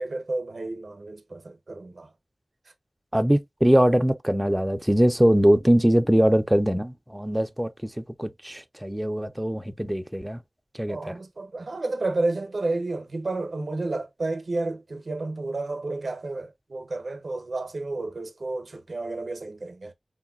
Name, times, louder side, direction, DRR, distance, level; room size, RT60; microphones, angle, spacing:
voice 1, 0.0-2.1 10.9-19.9, right 2 dB, 70° right, 0.5 m, -31 dB
voice 2, 3.1-7.7 8.2-10.4 10.8-11.1, equal, 10° right, 0.3 m, -22 dB
3.8 x 2.1 x 2.2 m
wide cardioid pair, 50°, 0 cm